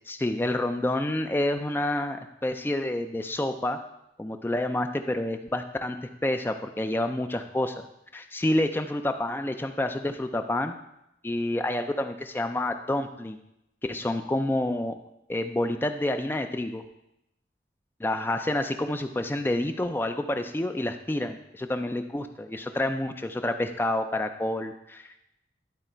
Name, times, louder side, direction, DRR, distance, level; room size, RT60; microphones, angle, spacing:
voice 1, 0.1-3.8 4.2-7.9 8.1-10.7 11.2-13.4 13.8-15.0 15.3-16.8 18.0-25.2, left 1 dB, 10° left, 7 dB, 0.3 m, -28 dB
11.0 x 4.0 x 4.5 m, 0.83 s
head